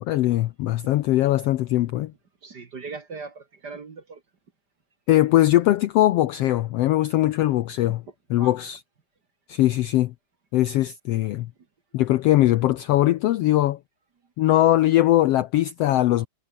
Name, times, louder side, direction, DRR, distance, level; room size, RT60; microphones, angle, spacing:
voice 1, 0.0-2.1 5.1-8.0 8.3-8.8 9.5-10.1 10.5-11.5 11.9-13.8 14.4-16.3, left 15 dB, 90° left, 1.3 m, -20 dB
voice 2, 2.4-4.2 7.8-7.9 8.4-8.6, right 4 dB, 40° right, 1.8 m, -39 dB
omnidirectional pair, 3.6 m